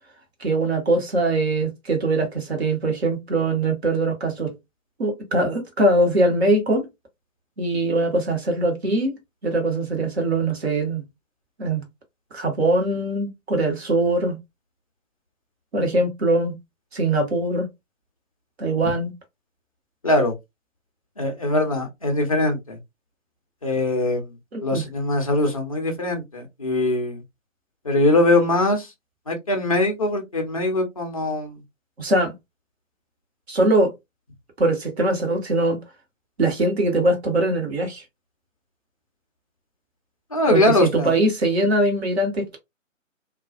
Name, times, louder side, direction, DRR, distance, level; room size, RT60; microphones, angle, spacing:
voice 1, 0.4-4.5 5.0-6.9 7.6-9.1 9.4-11.0 11.6-11.8 12.3-14.4 15.7-16.5 16.9-17.7 18.6-19.1 24.5-24.8 32.0-32.3 33.5-33.9 34.6-35.8 36.4-38.0 40.5-42.6, right 2 dB, 55° right, 1.0 m, -22 dB
voice 2, 20.0-20.3 21.2-22.8 23.6-24.3 24.6-27.2 27.8-28.9 29.3-31.6 40.3-41.1, left 2 dB, 30° left, 0.4 m, -22 dB
2.3 x 2.2 x 2.4 m
figure-of-eight pair, 135°, 39 cm